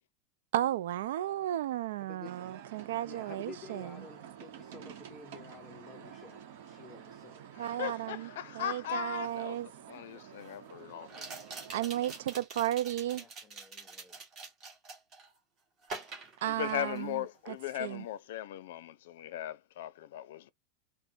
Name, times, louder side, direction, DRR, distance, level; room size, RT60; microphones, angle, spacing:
voice 1, 0.5-3.9 7.6-8.3 8.5-9.7 11.7-13.2 16.4-17.2 17.8-18.0, right 13 dB, 80° right, 0.3 m, -34 dB
voice 2, 2.0-2.3 3.0-7.4 13.1-14.2, left 5 dB, 10° left, 0.5 m, -51 dB
sound 1, 2.2-12.4, right 9 dB, 60° right, 0.9 m, -50 dB
voice 3, 7.6-11.2 16.4-20.5, left 12 dB, 70° left, 0.5 m, -38 dB
sound 2, 9.4-9.5 11.1-15.3 15.8-17.2 17.5-17.8, right 4 dB, 25° right, 1.4 m, -45 dB
4.2 x 2.1 x 2.6 m
supercardioid pair, 175°, 0 cm